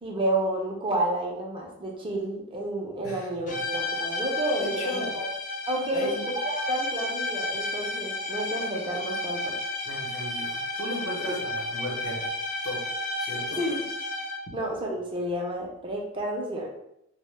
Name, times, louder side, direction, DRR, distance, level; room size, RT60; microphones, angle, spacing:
voice 1, 0.0-5.3 5.7-6.1 6.4-9.6 11.3-11.4 13.5-13.8 14.5-16.7, right 1 dB, 25° right, -1 dB, 0.4 m, -30 dB
voice 2, 3.0-3.6 4.6-5.1 5.9-6.3 9.8-12.3 12.6-12.9 13.2-13.6, left 1 dB, 85° left, -3 dB, 0.8 m, -35 dB
sound 1, 3.5-14.6, left 2 dB, 40° left, 0.3 m, -32 dB
2.1 x 2.0 x 3.1 m, 0.79 s
head